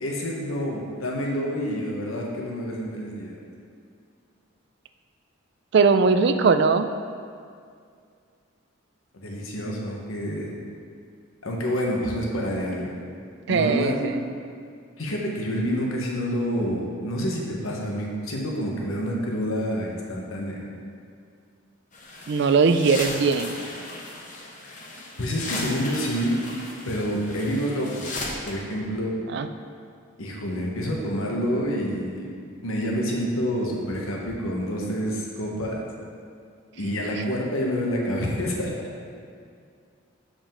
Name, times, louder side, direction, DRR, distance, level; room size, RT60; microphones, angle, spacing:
voice 1, 0.0-3.4 9.1-10.5 11.4-12.9 13.5-14.2 15.0-20.6 25.2-26.4 26.9-28.1 28.4-29.2 30.2-32.3 32.6-35.8 36.7-38.7, equal, 80° left, -2 dB, 1.1 m, -28 dB
voice 2, 5.7-6.9 13.5-14.1 22.3-23.5 29.3-29.5, right 4 dB, 55° right, 9 dB, 0.3 m, -20 dB
sound 1, 21.9-28.5, left 2 dB, 35° left, 0.8 m, -36 dB
7.2 x 5.0 x 3.8 m, 2.2 s
head